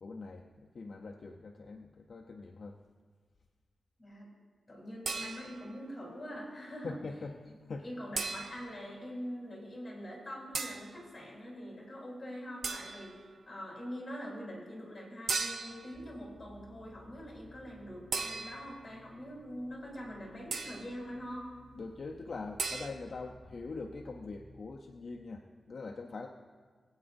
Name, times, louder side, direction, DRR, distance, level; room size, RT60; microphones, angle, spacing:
voice 1, 0.0-2.8 6.8-7.9 21.8-26.3, left 3 dB, 60° left, 2 dB, 0.6 m, -43 dB
voice 2, 4.7-6.9 7.8-21.5, equal, 25° left, -4 dB, 3.6 m, -44 dB
sound 1, 5.1-5.8 8.2-8.8 10.5-10.9 12.6-13.2 15.3-15.9 18.1-18.8 20.5-21.0 22.6-22.9, right 4 dB, 70° right, 0.6 m, -37 dB
sound 2, 15.9-24.6, equal, 10° right, 3.3 m, -58 dB
21.0 x 8.8 x 2.6 m, 1.6 s
wide cardioid pair, 115°, 0 cm